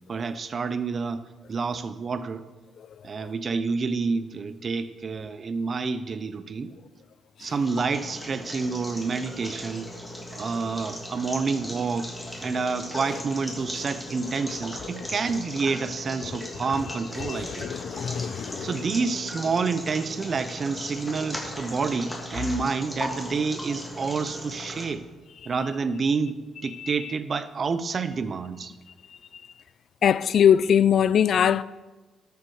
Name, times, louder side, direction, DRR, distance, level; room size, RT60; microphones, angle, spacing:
voice 1, 0.1-2.4 3.0-6.7 7.4-9.9 10.3-12.1 12.4-17.7 18.6-25.1 25.5-28.7, right 4 dB, 40° right, 0.7 m, -28 dB
sound 1, 7.4-24.9, left 1 dB, 10° left, 2.7 m, -38 dB
voice 2, 17.2-18.7 26.8-26.9 30.0-31.6, left 8 dB, 60° left, 0.3 m, -22 dB
12.5 x 7.0 x 4.8 m
cardioid pair, 90°, 0 cm